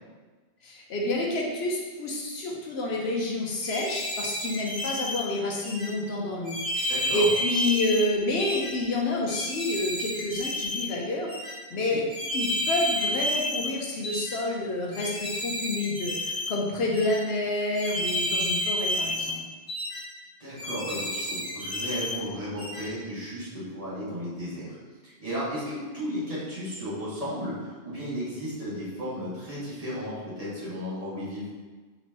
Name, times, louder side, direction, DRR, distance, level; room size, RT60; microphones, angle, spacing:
voice 1, 0.6-12.0 12.3-19.4, left 2 dB, 70° left, -1 dB, 0.9 m, -29 dB
sound 1, 3.6-5.2 5.6-5.9 6.4-8.1 8.4-8.7 9.3-10.9 11.3-11.5 12.1-13.7 14.0-14.4 14.9-16.5 16.9-17.2 17.7-19.4 19.7-20.0 20.6-22.2 22.6-22.9, left 1 dB, 30° left, 1.6 m, -30 dB
voice 2, 6.9-7.3 11.9-12.0 20.4-24.7 25.0-31.5, equal, 35° right, -10 dB, 1.6 m, -34 dB
4.4 x 3.0 x 2.9 m, 1.3 s
omnidirectional pair, 1.1 m